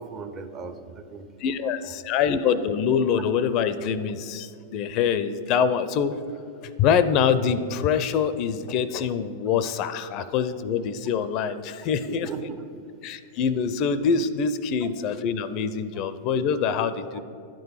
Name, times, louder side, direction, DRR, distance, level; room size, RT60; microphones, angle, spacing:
voice 1, 0.0-1.3 12.0-12.8 15.9-16.0, right 5 dB, 35° right, 9 dB, 0.6 m, -37 dB
voice 2, 1.4-6.2 6.8-12.3 13.0-17.2, left 7 dB, 45° left, 13 dB, 0.4 m, -25 dB
10.5 x 3.8 x 5.8 m, 2.5 s
hypercardioid pair, 110°, 0 cm